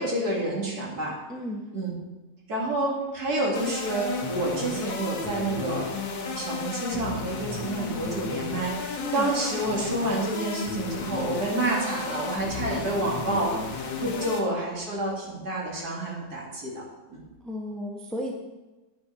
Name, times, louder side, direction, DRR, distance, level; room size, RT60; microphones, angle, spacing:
voice 1, 0.0-1.1 1.7-1.9 2.5-5.9 6.3-16.8 17.1-17.2, right 2 dB, 60° right, -3 dB, 3.1 m, -29 dB
voice 2, 1.3-1.6 9.0-9.3 14.0-14.3 17.4-18.3, left 1 dB, ahead, 0 dB, 1.1 m, -34 dB
sound 1, 3.5-14.4, left 4 dB, 80° left, 1.9 m, -33 dB
9.8 x 9.0 x 5.0 m, 1.1 s
omnidirectional pair, 1.9 m